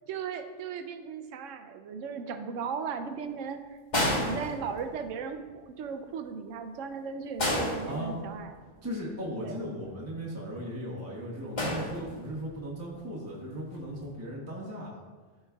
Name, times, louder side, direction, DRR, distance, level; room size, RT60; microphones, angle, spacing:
voice 1, 0.1-3.6 4.0-8.5 9.4-9.6, right 6 dB, 80° right, 8 dB, 0.9 m, -37 dB
sound 1, 3.9-5.2 7.4-8.6 11.6-12.5 13.7-14.0, left 1 dB, 35° left, 1.4 m, -31 dB
voice 2, 7.9-8.2 8.8-14.9, equal, 15° right, -4 dB, 0.9 m, -37 dB
12.0 x 4.4 x 2.3 m, 1.4 s
omnidirectional pair, 1.3 m